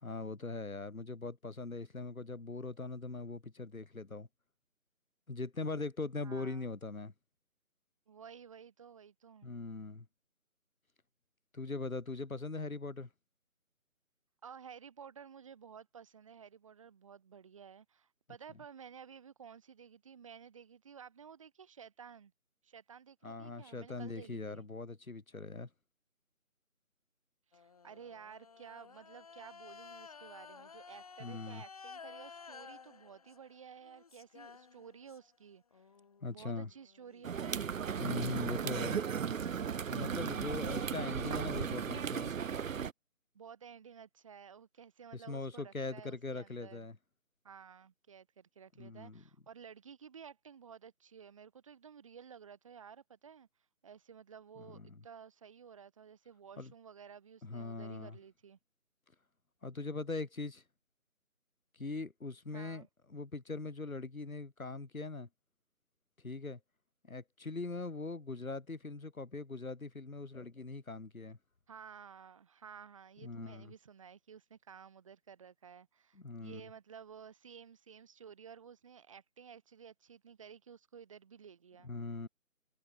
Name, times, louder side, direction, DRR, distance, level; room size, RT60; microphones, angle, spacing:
voice 1, 0.0-4.3 5.3-7.1 9.4-10.1 11.5-13.1 23.2-25.7 31.2-31.6 36.2-36.7 38.0-39.0 39.9-42.3 45.1-47.0 48.8-49.2 54.7-55.0 56.6-56.7 57.4-58.2 59.6-60.6 61.8-65.3 66.2-66.6 67.0-71.4 73.2-73.7 76.2-76.6 81.8-82.3, left 3 dB, 75° left, 2.0 m, -41 dB
voice 2, 6.2-6.7 8.1-9.5 14.4-22.3 22.6-24.7 27.5-35.9 36.3-37.6 43.3-46.9 47.4-53.5 53.8-58.6 62.5-62.9 71.7-81.9, right 7 dB, 25° right, 4.0 m, -54 dB
sound 1, 27.5-35.4 35.7-38.4, left 5 dB, 25° left, 2.6 m, -54 dB
sound 2, 37.2-42.9, right 7 dB, 70° right, 0.5 m, -36 dB
figure-of-eight pair, 160°, 42 cm